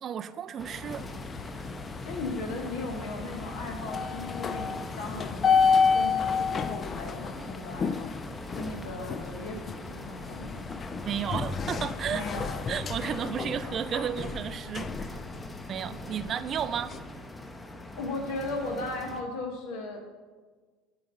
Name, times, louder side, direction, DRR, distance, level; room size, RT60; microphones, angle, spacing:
voice 1, 0.0-1.1 11.0-12.3 12.7-15.2 15.7-17.0, right 8 dB, 40° right, 0.3 m, -33 dB
sound 1, 0.6-19.2, left 1 dB, 15° left, 0.8 m, -42 dB
sound 2, 0.8-17.0, left 5 dB, 35° left, 0.4 m, -31 dB
voice 2, 2.1-8.1 8.5-10.6 12.1-12.5 15.9-16.1 18.0-20.0, left 2 dB, 65° left, 0.9 m, -37 dB
8.7 x 3.9 x 5.9 m
hypercardioid pair, 70°, 0 cm